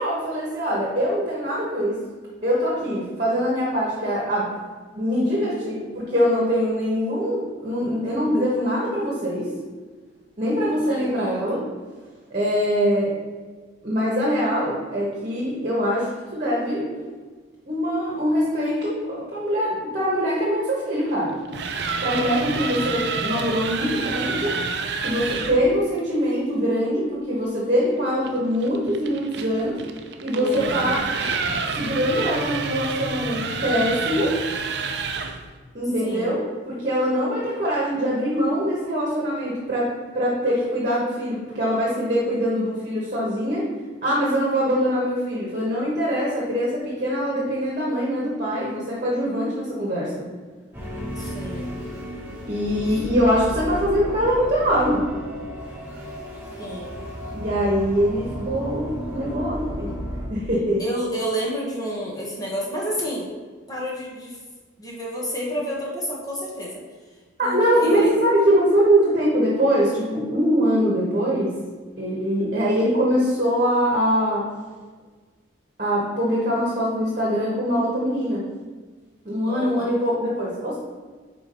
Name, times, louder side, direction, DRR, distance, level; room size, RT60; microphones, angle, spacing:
voice 1, 0.0-2.0 2.4-4.5 4.9-9.5 10.4-11.6 12.3-13.1 13.8-16.9 17.6-21.3 22.0-24.5 25.0-29.8 30.2-31.0 31.8-34.3 35.7-39.9 40.1-43.6 44.0-50.2 52.5-55.0 57.3-59.9 60.3-60.8 67.4-71.5 72.0-74.4 75.8-78.4 79.2-80.8, equal, 40° right, -5 dB, 1.3 m, -23 dB
voice 2, 10.9-11.4 30.3-31.0 36.0-36.4 51.2-51.7 52.9-53.0 56.6-57.0 60.8-63.3 63.7-64.4 64.8-66.8 67.4-68.1 79.4-79.9, equal, 20° left, -4 dB, 1.2 m, -30 dB
sound 1, 21.3-25.6 28.2-35.5, right 4 dB, 55° right, 0.5 m, -28 dB
sound 2, 50.7-60.3, equal, 10° right, 1.2 m, -34 dB
5.0 x 4.5 x 5.3 m, 1.4 s
head